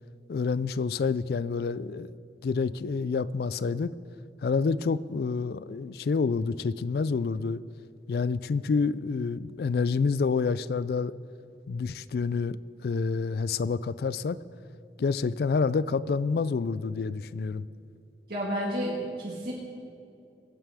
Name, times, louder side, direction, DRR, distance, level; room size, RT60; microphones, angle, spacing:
voice 1, 0.3-2.1 2.4-3.9 4.4-7.6 8.1-11.1 11.7-12.6 12.8-14.4 15.0-17.7, left 4 dB, 60° left, 0.3 m, -28 dB
voice 2, 18.3-19.5, equal, 55° right, 1.7 m, -31 dB
22.5 x 9.1 x 3.6 m
head